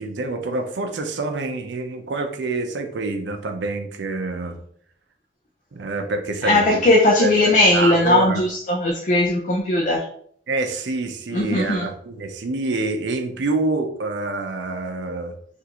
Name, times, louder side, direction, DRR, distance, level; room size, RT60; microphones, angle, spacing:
voice 1, 0.0-4.6 5.7-6.8 7.2-8.4 10.5-15.3, right 3 dB, 80° right, 5 dB, 0.5 m, -26 dB
voice 2, 6.4-10.0 11.3-11.9, left 2 dB, 45° left, -1 dB, 0.5 m, -18 dB
3.6 x 2.5 x 2.8 m, 0.63 s
head